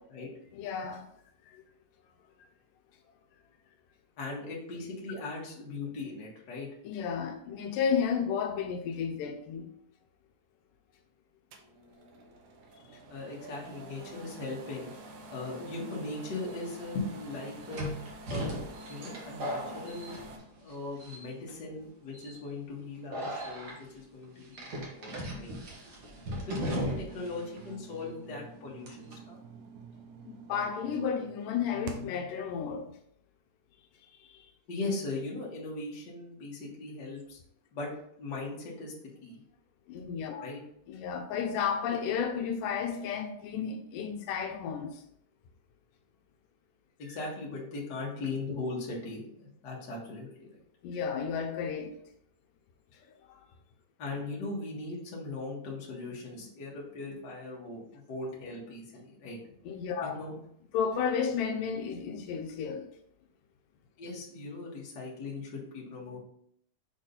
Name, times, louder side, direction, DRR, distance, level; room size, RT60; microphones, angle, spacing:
voice 1, 0.5-1.1 1.5-1.6 6.8-9.7 12.9-13.0 30.2-32.9 34.0-34.5 39.9-40.5 40.9-45.0 50.8-51.9 53.0-53.4 59.7-60.1 60.7-62.9, left 7 dB, 85° left, 2.3 m, -32 dB
voice 2, 4.2-6.7 13.1-14.9 15.3-18.0 18.3-20.1 20.6-25.5 26.4-29.4 34.7-37.4 37.7-37.9 38.2-39.4 40.4-40.6 47.0-50.6 54.0-59.4 60.0-60.3 64.0-66.2, left 3 dB, 40° left, 1.7 m, -39 dB
sound 1, 11.5-20.4, right 1 dB, 75° right, 2.2 m, -48 dB
sound 2, 16.4-16.5 17.7-20.7 21.0-21.5 22.1-22.4 23.1-23.7 24.5-27.3 27.6-27.7 28.9-29.1, equal, 50° right, 1.2 m, -37 dB
sound 3, 25.6-32.3, right 6 dB, 90° right, 2.4 m, -49 dB
6.7 x 3.9 x 3.9 m
omnidirectional pair, 3.8 m